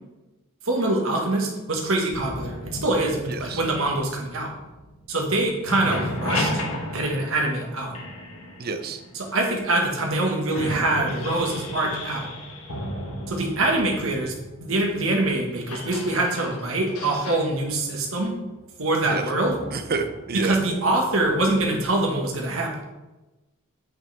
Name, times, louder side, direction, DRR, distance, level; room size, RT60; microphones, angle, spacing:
voice 1, 0.6-4.5 5.1-6.6 6.9-7.9 9.1-12.3 13.3-18.3 18.8-19.5 20.3-22.7, right 2 dB, 65° right, 0 dB, 1.6 m, -24 dB
sound 1, 2.1-5.3 5.5-9.5 10.1-10.2 10.5-21.9, left 1 dB, 85° left, 1.5 m, -34 dB
voice 2, 3.3-3.6 8.6-9.0 19.1-19.2 19.7-20.6, right 4 dB, 45° right, 8 dB, 0.6 m, -29 dB
8.5 x 5.8 x 3.5 m, 1.1 s
head